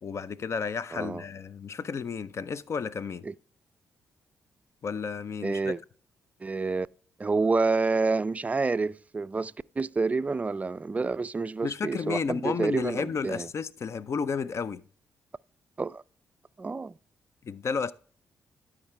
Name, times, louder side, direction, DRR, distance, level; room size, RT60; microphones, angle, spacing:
voice 1, 0.0-3.2 4.8-5.7 11.6-14.8 17.4-17.9, left 5 dB, 50° left, 0.5 m, -32 dB
voice 2, 0.9-1.2 3.3-3.4 5.4-5.8 6.4-6.9 7.2-13.5 15.8-16.0 16.6-16.9, right 3 dB, 25° right, 0.3 m, -28 dB
12.0 x 5.0 x 3.2 m
supercardioid pair, 55°, 6 cm